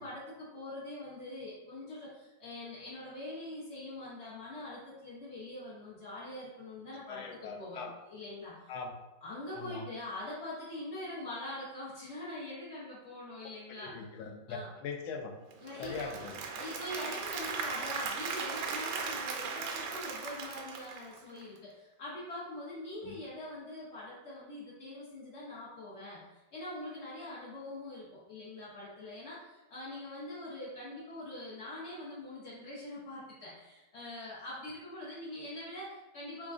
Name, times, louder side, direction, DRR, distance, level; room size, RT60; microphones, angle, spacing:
voice 1, 0.0-7.8 8.1-8.7 9.2-14.0 14.5-14.7 15.6-16.1 16.5-36.5, left 1 dB, 50° left, -9 dB, 0.8 m, -43 dB
voice 2, 7.1-7.9 8.7-8.9 9.6-9.9 13.8-15.3 15.8-16.4 23.0-23.1, left 5 dB, 80° left, 3 dB, 1.3 m, -41 dB
Applause / Crowd, 15.5-21.6, right 5 dB, 75° right, 1.2 m, -38 dB
3.7 x 3.5 x 2.4 m, 1.1 s
omnidirectional pair, 2.3 m